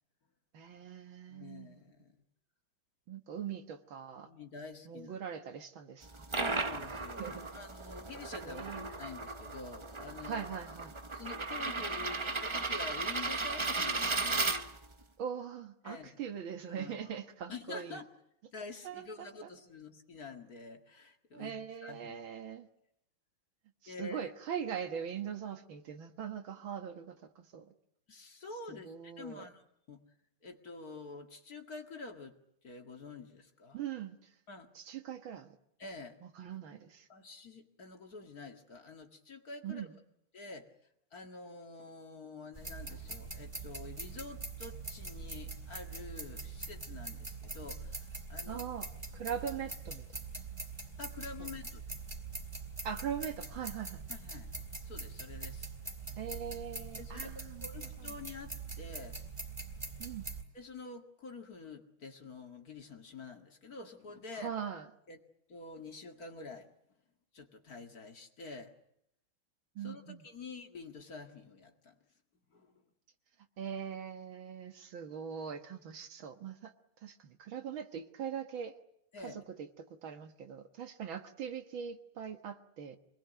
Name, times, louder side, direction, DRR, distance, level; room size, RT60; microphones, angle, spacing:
voice 1, 0.5-1.9 3.1-4.3 4.9-6.3 7.2-7.5 8.4-8.9 10.2-11.0 15.2-18.0 18.8-19.5 21.3-22.7 23.8-27.7 28.7-29.5 33.7-34.3 34.8-35.6 36.2-37.1 39.6-40.0 48.5-50.5 51.4-51.5 52.8-54.0 56.2-57.7 58.0-58.2 60.0-60.3 64.3-64.9 69.8-70.3 73.6-78.8 79.2-83.0, right 8 dB, 70° right, 2.1 m, -42 dB
voice 2, 1.3-2.2 3.3-3.5 4.2-5.2 6.4-10.5 11.1-14.6 15.8-16.2 16.7-16.9 17.5-18.1 18.5-22.3 23.9-24.3 28.1-29.6 29.9-30.0 30.4-32.4 32.6-33.8 34.5-34.7 35.8-36.2 37.1-39.9 40.3-40.7 41.1-48.6 51.0-51.8 54.1-54.5 54.8-55.7 57.0-57.3 57.6-59.2 60.5-64.5 65.1-65.2 65.5-66.7 67.3-68.7 69.8-72.0 72.5-72.7 79.1-79.4, left 4 dB, 45° left, 2.4 m, -48 dB
sound 1, 6.0-15.0, right 3 dB, 50° right, 0.3 m, -36 dB
sound 2, 42.5-60.4, right 3 dB, 15° right, 3.3 m, -43 dB
26.0 x 20.5 x 9.2 m
omnidirectional pair, 2.3 m